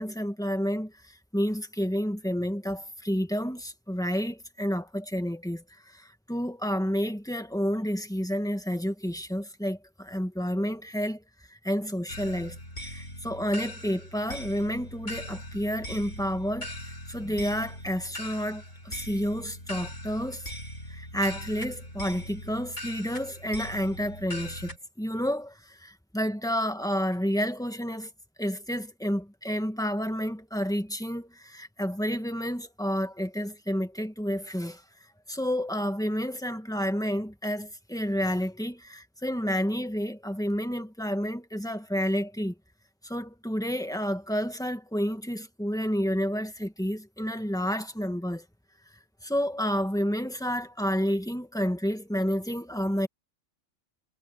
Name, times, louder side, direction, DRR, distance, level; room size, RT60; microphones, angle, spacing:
voice 1, 0.0-11.2 11.5-12.6 12.8-16.7 17.1-20.5 20.9-28.1 28.4-34.8 35.3-42.5 43.0-48.4 49.2-53.1, equal, 5° left, 1.8 m, -30 dB
sound 1, 12.1-24.8, equal, 75° left, 7.9 m, -40 dB
omnidirectional pair, 1.2 m